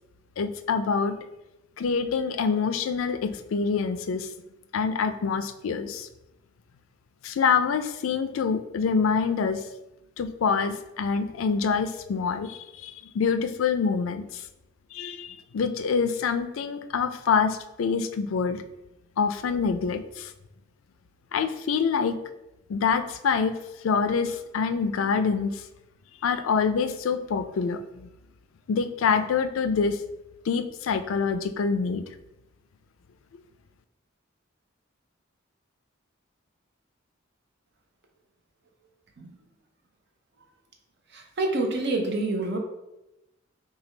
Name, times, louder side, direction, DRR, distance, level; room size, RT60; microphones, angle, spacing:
voice 1, 0.4-1.2 1.8-4.3 4.7-6.1 7.2-9.6 10.2-14.4 14.9-15.3 15.5-18.6 19.2-20.3 21.3-22.2 22.7-23.5 23.8-25.6 26.2-28.1 28.7-30.0 30.5-32.0, left 5 dB, 80° left, 10 dB, 0.4 m, -26 dB
voice 2, 41.4-42.6, right 2 dB, 55° right, 3 dB, 0.7 m, -26 dB
5.8 x 2.3 x 3.2 m, 0.93 s
head